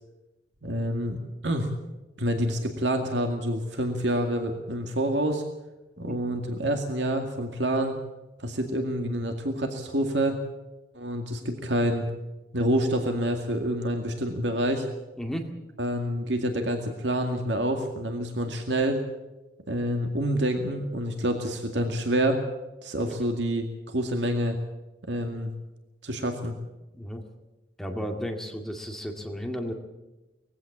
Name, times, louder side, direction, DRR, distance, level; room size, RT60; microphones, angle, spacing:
voice 1, 0.6-1.2 1.4-1.7 2.2-5.4 6.0-8.0 8.4-10.4 10.9-12.1 12.5-14.9 15.8-19.0 19.7-22.4 22.8-24.6 25.1-25.5 26.0-26.5, right 1 dB, 85° right, 5 dB, 2.1 m, -27 dB
voice 2, 27.8-29.7, equal, 5° left, 3 dB, 2.1 m, -33 dB
20.5 x 15.5 x 8.5 m, 1.0 s
head